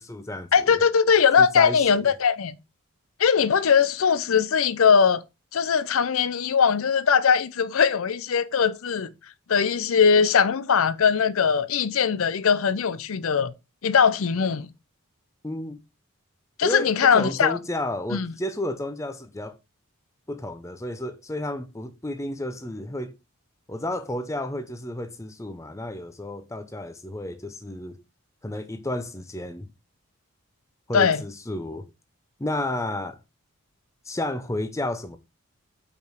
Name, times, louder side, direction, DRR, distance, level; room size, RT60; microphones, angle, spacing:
voice 1, 0.0-0.8 1.4-1.9 15.4-15.8 16.6-19.6 20.3-23.1 23.7-28.0 28.4-29.7 30.9-31.9 32.4-33.2 34.0-35.2, left 1 dB, 15° left, 0.6 m, -31 dB
voice 2, 0.5-2.6 3.2-5.2 5.5-9.1 9.5-13.5 13.8-14.7 16.6-17.6 18.1-18.3 30.9-31.2, left 6 dB, 70° left, 0.5 m, -20 dB
5.2 x 4.6 x 4.5 m
head